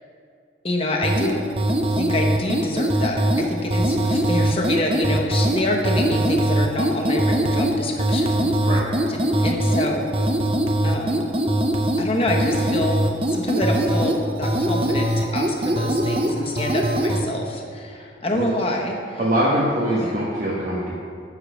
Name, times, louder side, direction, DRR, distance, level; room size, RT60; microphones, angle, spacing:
voice 1, 0.6-1.4 1.9-8.5 9.1-10.1 10.8-11.2 12.0-13.0 13.3-19.2 20.0-20.2, left 1 dB, 30° left, 0 dB, 1.2 m, -26 dB
sound 1, 1.0-17.2, right 1 dB, 30° right, 0.6 m, -22 dB
voice 2, 19.2-21.0, right 1 dB, 45° right, -6 dB, 1.3 m, -23 dB
11.5 x 4.9 x 7.0 m, 2.4 s
head